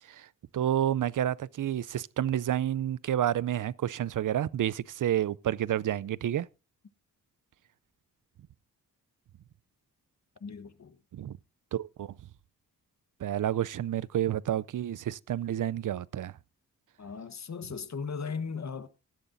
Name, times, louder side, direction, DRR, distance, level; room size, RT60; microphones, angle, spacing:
voice 1, 0.5-6.5 11.1-11.4 11.7-12.1 13.2-16.3, right 11 dB, 55° right, 0.6 m, -30 dB
voice 2, 10.4-11.0 17.0-18.9, left 5 dB, 50° left, 1.3 m, -37 dB
16.5 x 11.5 x 2.7 m
cardioid pair, 60°, 37 cm